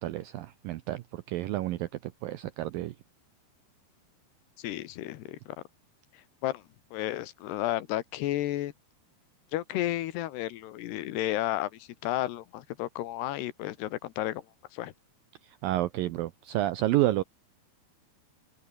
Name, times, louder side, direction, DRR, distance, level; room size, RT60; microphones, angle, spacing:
voice 1, 0.0-2.9 15.5-17.2, right 15 dB, 75° right, 2.1 m, -30 dB
voice 2, 4.6-5.4 6.4-6.6 6.9-8.7 9.5-14.4 14.7-14.9, left 14 dB, 80° left, 3.3 m, -32 dB
omnidirectional pair, 4.9 m